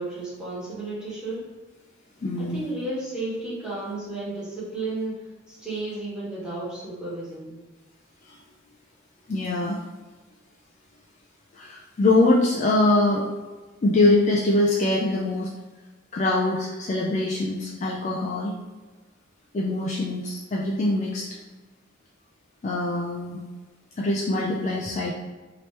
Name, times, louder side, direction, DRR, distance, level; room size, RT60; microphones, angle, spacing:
voice 1, 0.0-1.4 2.4-5.2 5.5-7.6, right 2 dB, 5° right, -10 dB, 1.4 m, -33 dB
voice 2, 2.2-2.6 8.2-8.4 9.3-9.8 11.5-13.3 13.8-15.5 16.1-18.6 19.5-21.3 22.6-23.4 24.0-25.1, left 2 dB, 35° left, -2 dB, 0.3 m, -23 dB
2.9 x 2.9 x 3.2 m, 1.3 s
head